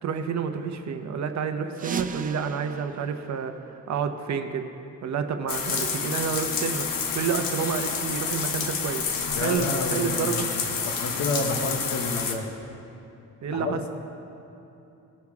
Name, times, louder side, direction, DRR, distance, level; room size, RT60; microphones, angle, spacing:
voice 1, 0.0-3.6 3.9-4.7 5.0-6.9 7.1-10.5 13.4-13.9, right 6 dB, 55° right, 7 dB, 0.8 m, -29 dB
sound 1, 1.7-4.3, right 6 dB, 25° right, 0.4 m, -38 dB
sound 2, 5.5-12.4, left 5 dB, 80° left, 1.1 m, -29 dB
voice 2, 9.4-12.5 13.5-13.8, left 3 dB, 60° left, 4 dB, 1.1 m, -30 dB
19.5 x 6.5 x 3.6 m, 2.9 s
cardioid pair, 140°, 33 cm